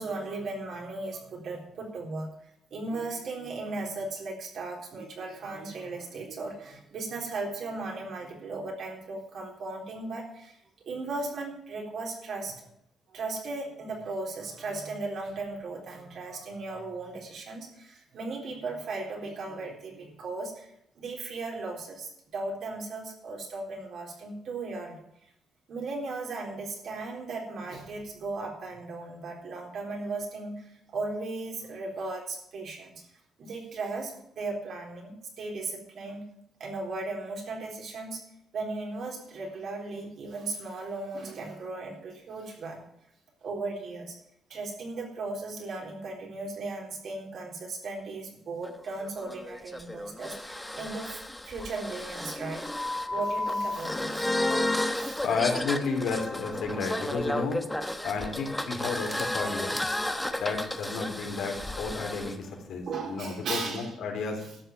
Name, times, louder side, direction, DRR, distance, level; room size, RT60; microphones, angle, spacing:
voice 1, 0.0-2.3 2.7-10.6 10.9-12.7 13.1-20.7 21.0-25.0 25.7-33.0 33.4-36.2 36.6-38.2 38.5-42.8 43.4-44.2 44.5-52.6 53.1-54.3 55.0-55.2 62.9-63.9 64.4-64.5, right 3 dB, 65° right, 0 dB, 3.8 m, -36 dB
sound 1, 48.6-62.4, left 1 dB, 10° left, 1.1 m, -32 dB
voice 2, 55.2-57.6 58.0-59.8 60.4-64.4, left 4 dB, 80° left, 1 dB, 3.4 m, -32 dB
12.5 x 6.6 x 8.9 m, 0.76 s
cardioid pair, 90°, 0 cm